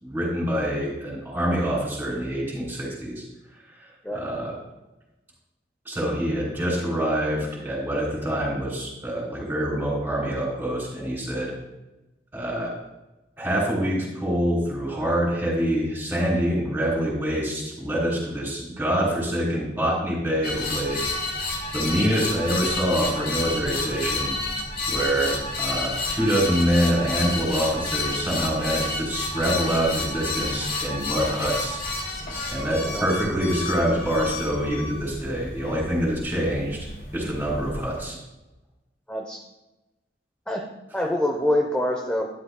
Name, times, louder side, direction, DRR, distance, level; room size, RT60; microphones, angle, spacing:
voice 1, 0.0-3.2 3.7-4.6 5.9-11.5 12.3-12.7 13.4-21.1 21.7-24.3 24.9-31.8 32.5-36.9 37.1-38.2, equal, 10° right, -4 dB, 3.5 m, -25 dB
sound 1, 20.4-38.0, left 2 dB, 55° left, 2.7 m, -30 dB
voice 2, 39.1-39.4 40.5-40.6 40.9-42.3, left 1 dB, 5° left, 1 dB, 0.7 m, -25 dB
12.5 x 10.5 x 2.2 m, 1.0 s
head